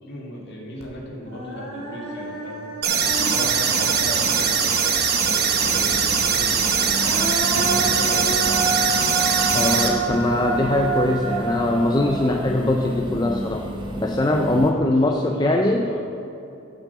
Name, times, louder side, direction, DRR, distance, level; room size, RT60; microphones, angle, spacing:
voice 1, 0.0-2.7 3.0-6.9 7.4-8.7 14.5-16.0, left 1 dB, 50° left, -3 dB, 2.2 m, -36 dB
Human voice, 0.8-0.9 1.2-4.9 6.6-13.8, right 3 dB, 80° right, 2.1 m, -29 dB
sound 1, 2.8-9.9, right 6 dB, 45° right, 1.0 m, -21 dB
sound 2, 5.6-14.7, equal, 20° right, 0.8 m, -32 dB
voice 2, 9.5-13.7 14.0-15.9, left 2 dB, 20° left, 3 dB, 0.4 m, -21 dB
8.9 x 7.5 x 6.7 m, 2.9 s
head